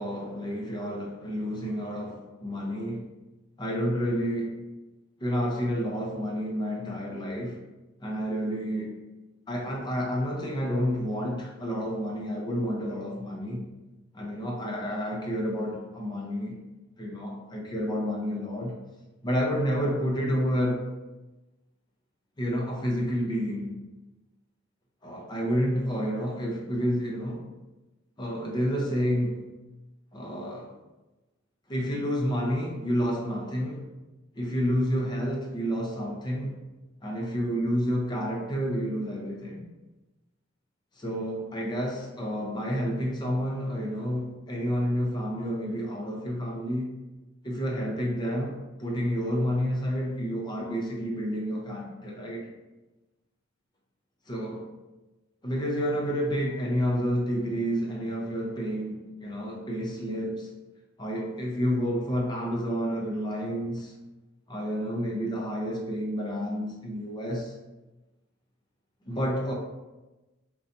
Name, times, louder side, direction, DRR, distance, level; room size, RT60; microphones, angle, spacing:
voice 1, 0.0-3.0 3.6-4.6 5.2-7.6 8.0-8.9 9.5-13.6 14.1-16.5 17.0-18.8 19.2-20.9 22.4-23.8 25.0-27.4 28.2-29.5 30.1-30.7 31.7-33.9 34.3-36.6 37.0-39.6 41.0-46.9 47.4-52.5 54.3-54.7 55.4-60.5 61.0-63.9 64.5-67.5 69.1-69.5, equal, 20° left, -1 dB, 0.5 m, -29 dB
4.0 x 2.3 x 2.5 m, 1.1 s
head